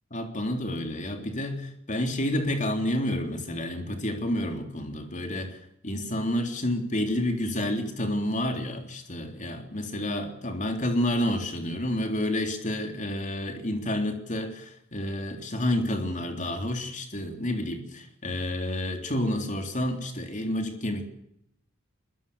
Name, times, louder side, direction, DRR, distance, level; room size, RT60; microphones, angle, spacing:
voice 1, 0.1-21.1, left 1 dB, 40° left, 4 dB, 3.5 m, -29 dB
22.5 x 22.0 x 7.1 m, 0.77 s
head